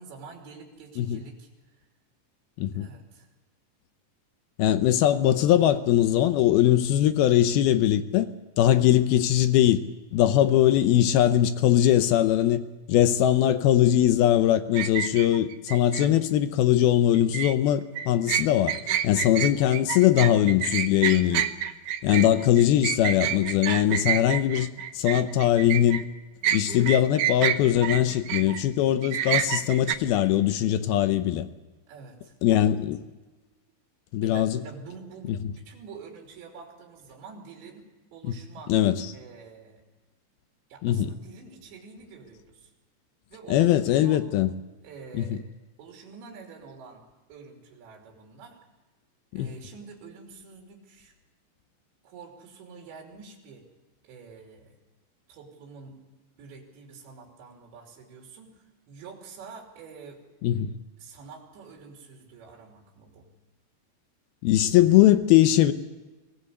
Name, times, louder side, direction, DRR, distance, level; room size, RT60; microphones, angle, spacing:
voice 1, 0.0-1.9 2.7-3.3 31.9-32.3 34.2-37.9 38.1-38.8 39.1-39.8 40.7-42.7 43.3-44.2 44.8-45.4 45.8-47.0 47.3-48.6 49.3-51.1 52.0-53.6 54.0-54.8 55.3-56.0 56.4-60.2 61.0-63.3, right 5 dB, 70° right, 5.2 m, -47 dB
voice 2, 2.6-2.9 4.6-8.3 8.6-9.8 10.1-12.6 12.9-18.8 19.0-21.4 22.0-24.7 24.9-26.0 26.5-31.5 32.4-33.0 34.1-34.6 38.7-39.1 40.8-41.1 43.5-44.5 45.2-45.4 49.3-49.5 60.4-60.7 64.4-65.7, left 12 dB, 80° left, 2.2 m, -21 dB
sound 1, 14.7-16.1 17.1-17.5 18.0-26.0 26.4-28.6 29.0-30.0, right 10 dB, 90° right, 1.8 m, -28 dB
24.0 x 17.5 x 8.2 m
omnidirectional pair, 5.3 m